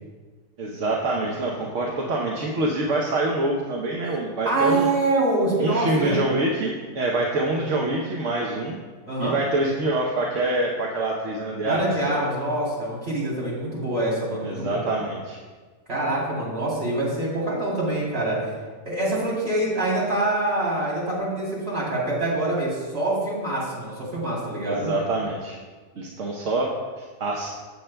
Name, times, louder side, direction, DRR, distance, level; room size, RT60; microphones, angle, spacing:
voice 1, 0.6-4.9 5.6-8.8 9.2-11.9 14.4-15.4 24.6-25.6 26.0-27.5, right 2 dB, 55° right, -2 dB, 1.1 m, -26 dB
voice 2, 4.5-6.2 9.1-9.4 11.6-14.9 15.9-18.4 18.8-24.9, right 2 dB, 40° right, -6 dB, 3.5 m, -25 dB
16.0 x 7.2 x 2.2 m, 1.4 s
omnidirectional pair, 1.7 m